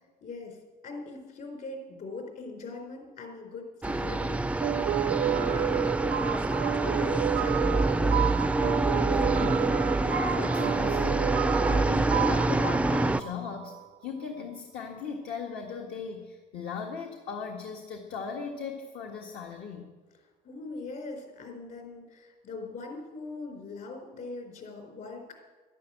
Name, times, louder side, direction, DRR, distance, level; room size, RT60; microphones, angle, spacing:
voice 1, 0.2-0.6 0.8-4.4 5.1-5.9 6.1-8.3 20.4-25.4, left 3 dB, 55° left, 3 dB, 4.4 m, -41 dB
sound 1, 3.8-13.2, right 2 dB, 5° right, 0.4 m, -26 dB
sound 2, 4.6-13.9, right 13 dB, 80° right, 0.5 m, -31 dB
voice 2, 9.1-11.4 11.6-19.9, left 6 dB, 70° left, 1 dB, 1.7 m, -38 dB
12.0 x 11.0 x 9.1 m, 1.3 s
cardioid pair, 110°, 17 cm